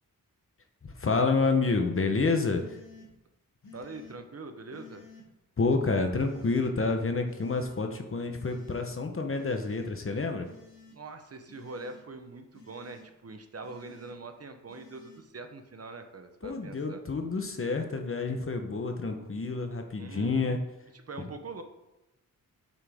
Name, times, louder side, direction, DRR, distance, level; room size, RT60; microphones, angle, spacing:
voice 1, 0.8-2.8 5.6-10.5 16.4-20.6 21.2-21.3, left 3 dB, 40° left, 5 dB, 0.9 m, -29 dB
sound 1, 1.9-2.0 2.5-3.1 3.6-4.2 4.7-5.2 6.2-6.7 7.3-7.8 8.3-8.8 9.4-9.9 10.4-11.0 11.5-12.0 12.5-13.1 13.6-14.1 14.7-15.2, left 4 dB, 65° left, 2.6 m, -53 dB
voice 2, 3.7-5.1 10.9-17.0 20.0-20.6 21.1-21.6, right 3 dB, 45° right, 7 dB, 0.8 m, -43 dB
7.6 x 6.1 x 3.5 m, 0.94 s
wide cardioid pair, 120°, 34 cm